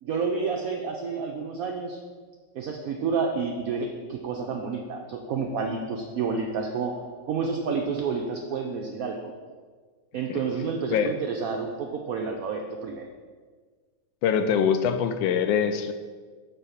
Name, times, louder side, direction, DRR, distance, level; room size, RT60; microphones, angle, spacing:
voice 1, 0.0-2.0 2.5-7.0 7.3-9.3 10.1-13.1, right 5 dB, 80° right, 2 dB, 0.7 m, -29 dB
voice 2, 14.2-15.9, left 7 dB, 80° left, 9 dB, 1.3 m, -23 dB
5.6 x 4.1 x 5.7 m, 1.5 s
omnidirectional pair, 2.1 m